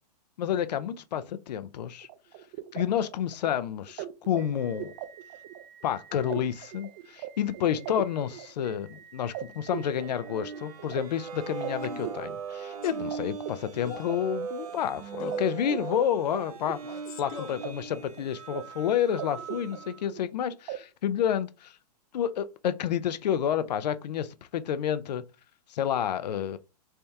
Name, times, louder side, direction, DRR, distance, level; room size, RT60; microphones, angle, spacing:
voice 1, 0.4-2.1 2.7-4.9 5.8-16.8 17.2-21.7 22.1-25.2 25.7-26.6, left 9 dB, 85° left, 0.5 m, -29 dB
sound 1, 2.0-13.2 13.4-15.0 15.3-15.4 15.6-17.7 17.9-18.6 18.9-20.3 20.7-20.8, right 13 dB, 30° right, 0.3 m, -41 dB
sound 2, 9.8-20.0, right 6 dB, 65° right, 0.9 m, -39 dB
Male speech man speaking, 11.8-12.1 12.8-13.1 13.8-14.2 15.2-15.5 16.8-17.6, left 7 dB, 60° left, 0.8 m, -43 dB
3.4 x 2.8 x 3.4 m
hypercardioid pair, 145°, 21 cm